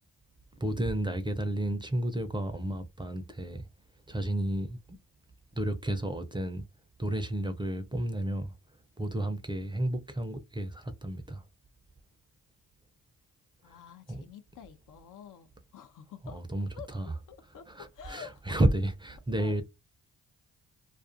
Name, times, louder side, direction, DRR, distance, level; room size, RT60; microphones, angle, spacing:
voice 1, 0.6-3.7 4.1-5.0 5.5-6.6 7.0-8.5 9.0-11.4 14.1-14.3 16.3-17.1 17.7-19.6, right 1 dB, 15° right, 0.5 m, -31 dB
voice 2, 13.6-15.5 15.7-16.4 16.8-18.6 19.4-19.6, left 8 dB, 60° left, 0.6 m, -49 dB
2.4 x 2.4 x 2.5 m
supercardioid pair, 60°, 36 cm